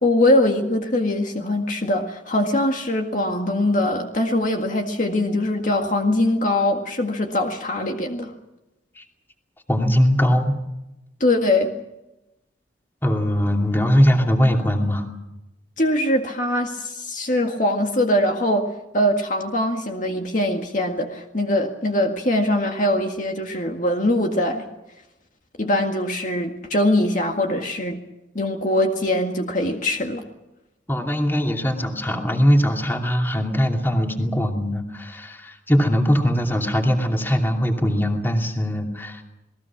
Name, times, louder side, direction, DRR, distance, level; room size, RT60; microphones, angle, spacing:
voice 1, 0.0-8.3 11.2-11.7 15.8-24.7 25.6-28.0 28.3-30.2, left 1 dB, 45° left, 3 dB, 1.9 m, -22 dB
voice 2, 9.7-10.5 13.0-15.1 30.9-39.2, equal, 10° left, 2 dB, 2.7 m, -21 dB
28.5 x 20.0 x 6.0 m, 0.95 s
head